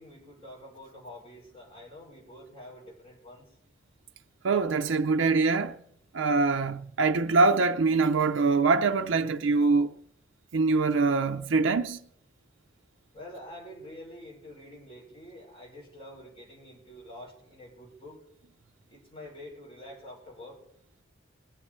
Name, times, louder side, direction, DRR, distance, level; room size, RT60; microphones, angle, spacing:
voice 1, 0.0-3.4 13.1-18.2 18.9-20.5, left 1 dB, 30° left, 4.6 m, -47 dB
voice 2, 4.4-5.7 6.1-9.9 10.5-12.0, right 4 dB, 90° right, 0.5 m, -24 dB
20.0 x 8.6 x 4.4 m
head